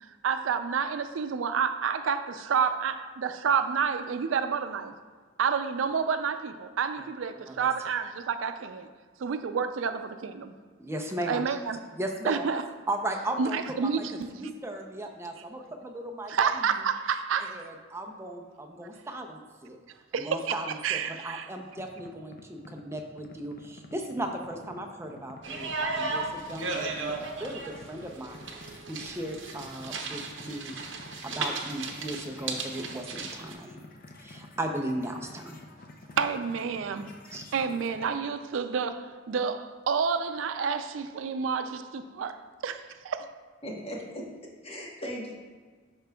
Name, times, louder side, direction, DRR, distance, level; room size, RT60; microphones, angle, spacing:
voice 1, 0.0-4.9 5.4-8.9 9.2-10.5 11.3-11.8 12.3-12.6 13.4-14.3 16.3-17.7 20.1-20.5 20.8-21.5 36.2-37.1 37.5-42.4 42.6-43.3, right 6 dB, 90° right, 9 dB, 0.4 m, -29 dB
voice 2, 10.8-11.4 12.0-12.5 12.9-16.6 17.4-19.8 20.1-30.7 31.2-33.8 34.2-35.6 37.3-37.4, right 1 dB, 15° right, 2 dB, 0.5 m, -37 dB
sound 1, 21.8-38.1, left 2 dB, 45° left, 0.5 m, -49 dB
sound 2, 25.4-33.5, right 3 dB, 70° right, 0.8 m, -35 dB
voice 3, 43.6-45.3, equal, 30° left, -2 dB, 1.2 m, -38 dB
11.5 x 4.5 x 2.3 m, 1.5 s
head